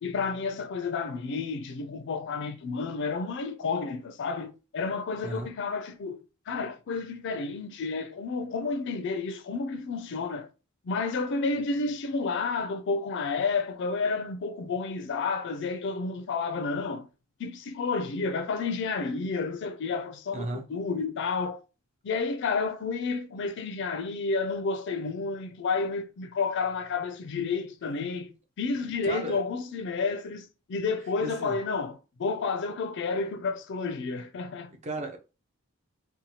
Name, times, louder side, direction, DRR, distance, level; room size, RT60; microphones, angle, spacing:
voice 1, 0.0-6.2 6.5-10.5 10.8-17.1 17.4-21.6 22.0-34.7, left 4 dB, 55° left, 0.4 m, -31 dB
voice 2, 20.3-20.7 28.8-29.4 31.2-31.6 34.8-35.2, right 2 dB, 30° right, 0.5 m, -35 dB
2.7 x 2.2 x 2.9 m
head